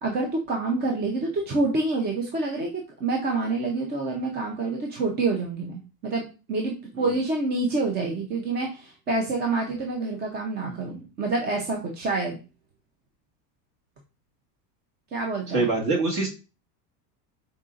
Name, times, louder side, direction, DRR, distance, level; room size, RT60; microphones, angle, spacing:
voice 1, 0.0-12.4 15.1-15.7, right 3 dB, 20° right, 1 dB, 0.5 m, -27 dB
voice 2, 10.6-10.9 15.5-16.3, right 3 dB, 45° right, -1 dB, 1.8 m, -25 dB
5.4 x 3.8 x 2.4 m, 0.31 s
cardioid pair, 150°, 49 cm